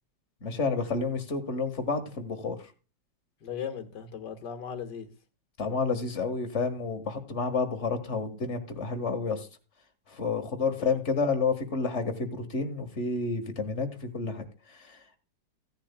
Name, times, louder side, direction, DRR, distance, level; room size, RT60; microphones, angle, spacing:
voice 1, 0.4-2.6 5.6-9.5 10.1-15.0, left 4 dB, 40° left, 1.9 m, -30 dB
voice 2, 3.4-5.1 10.8-11.0, left 8 dB, 70° left, 2.1 m, -37 dB
16.5 x 10.5 x 2.2 m
omnidirectional pair, 2.0 m